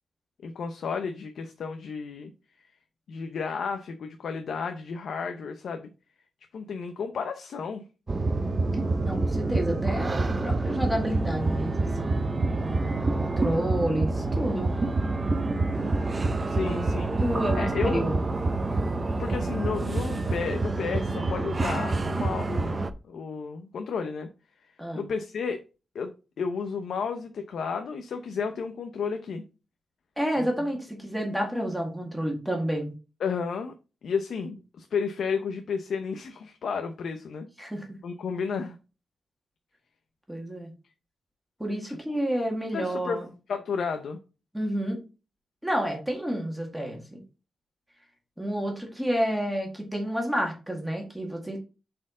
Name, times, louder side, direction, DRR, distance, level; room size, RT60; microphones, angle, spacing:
voice 1, 0.4-2.3 3.1-5.9 6.5-7.8 16.5-17.1 17.5-18.0 19.2-24.3 24.9-25.6 25.9-29.4 30.4-30.5 33.2-33.7 34.0-37.5 38.0-38.8 41.9-42.0 42.7-43.2 43.5-44.2, left 5 dB, 70° left, 7 dB, 0.7 m, -32 dB
sound 1, 8.1-22.9, right 2 dB, 25° right, 0.6 m, -27 dB
voice 2, 9.0-12.1 13.1-14.8 16.6-18.1 24.8-25.0 30.2-32.9 37.6-38.0 40.3-40.7 41.6-43.2 44.5-45.0 45.6-47.2 48.4-51.6, equal, 5° right, 1 dB, 1.7 m, -30 dB
7.5 x 4.5 x 3.7 m, 0.31 s
wide cardioid pair, 160°, 0 cm